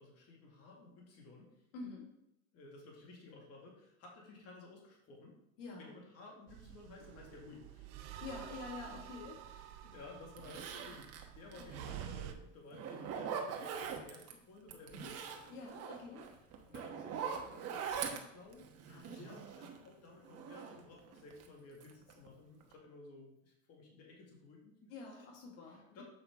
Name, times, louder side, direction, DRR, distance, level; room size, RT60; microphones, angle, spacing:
voice 1, 0.0-1.5 2.5-5.4 5.7-8.2 8.9-9.0 9.5-15.5 16.6-18.7 19.0-25.2 25.6-26.0, left 3 dB, 45° left, -1 dB, 2.2 m, -55 dB
voice 2, 1.7-2.1 5.6-5.9 8.2-9.4 15.5-16.3 18.9-19.3 24.9-26.0, left 4 dB, 85° left, -1 dB, 2.0 m, -47 dB
sound 1, 6.5-12.3, right 11 dB, 60° right, 0.8 m, -49 dB
Zipper (clothing), 9.7-9.8 10.4-12.3 12.7-14.3 14.7-19.9 20.2-21.5 21.8-22.3 22.6-22.7, right 7 dB, 45° right, 1.1 m, -43 dB
7.5 x 5.6 x 3.6 m, 0.81 s
supercardioid pair, 120°, 35 cm